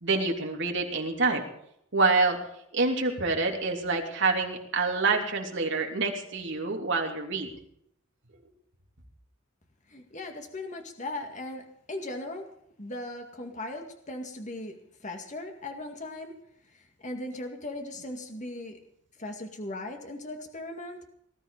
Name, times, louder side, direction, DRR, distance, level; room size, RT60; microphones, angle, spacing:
voice 1, 0.0-1.4 1.9-2.4 2.7-7.5, right 3 dB, 60° right, 1 dB, 3.4 m, -27 dB
voice 2, 9.9-12.5 12.8-14.7 15.0-16.4 16.7-18.8 19.2-21.1, left 2 dB, 35° left, 4 dB, 2.2 m, -38 dB
19.0 x 13.5 x 5.1 m, 0.72 s
head